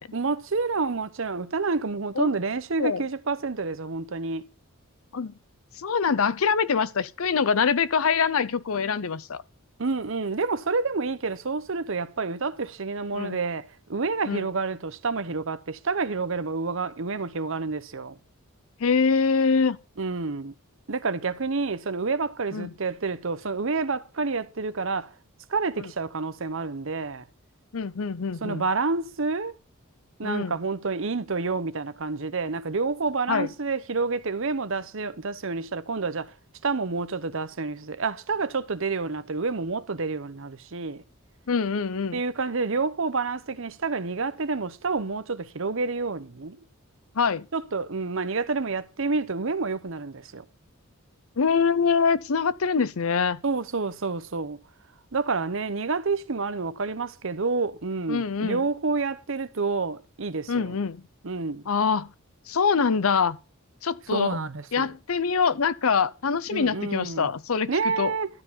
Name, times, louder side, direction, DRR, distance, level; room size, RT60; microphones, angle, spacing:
voice 1, 0.1-4.5 9.8-18.2 20.0-20.5 20.9-25.1 25.5-27.2 28.4-29.6 30.2-36.3 36.6-41.0 42.1-46.6 47.5-50.4 53.4-54.6 55.1-60.7 61.2-61.6 64.1-64.9 66.5-67.3 67.7-68.3, right 4 dB, 65° right, 0.8 m, -29 dB
voice 2, 5.8-9.4 13.1-13.4 14.3-14.5 18.8-19.8 22.5-22.7 25.8-25.9 27.7-28.6 30.2-30.6 33.3-33.5 41.5-42.2 47.2-47.5 51.4-53.4 58.1-58.6 60.5-61.0 61.7-62.1 62.5-63.4 63.8-64.4 64.7-67.7 68.0-68.1, left 5 dB, 75° left, 0.6 m, -24 dB
13.0 x 4.7 x 8.6 m
head